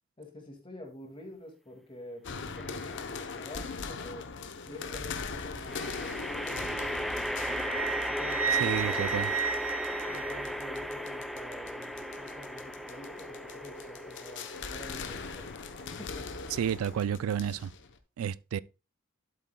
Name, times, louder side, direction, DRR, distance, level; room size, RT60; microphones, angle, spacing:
voice 1, 0.2-4.3 4.6-7.7 8.1-9.3 10.1-15.6 15.9-16.5, left 1 dB, 25° left, 2.1 m, -47 dB
sound 1, 2.2-18.0, left 4 dB, 60° left, 0.8 m, -41 dB
sound 2, 2.6-3.1 5.7-17.0, equal, ahead, 0.5 m, -37 dB
Wind instrument woodwind instrument, 7.3-10.8, right 7 dB, 70° right, 0.9 m, -33 dB
voice 2, 8.6-9.3 16.5-17.7 18.2-18.6, right 8 dB, 85° right, 0.3 m, -31 dB
11.0 x 8.3 x 2.3 m
head